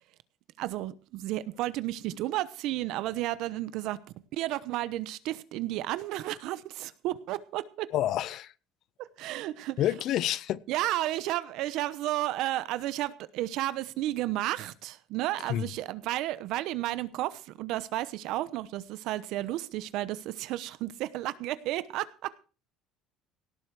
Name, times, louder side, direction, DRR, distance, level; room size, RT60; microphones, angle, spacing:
voice 1, 0.6-4.0 4.3-7.9 9.0-9.8 10.7-22.3, right 15 dB, 60° right, 0.9 m, -32 dB
voice 2, 7.9-8.5 9.8-10.6 15.5-15.7, left 12 dB, 45° left, 0.5 m, -28 dB
17.5 x 7.9 x 4.8 m
cardioid pair, 180°, 0 cm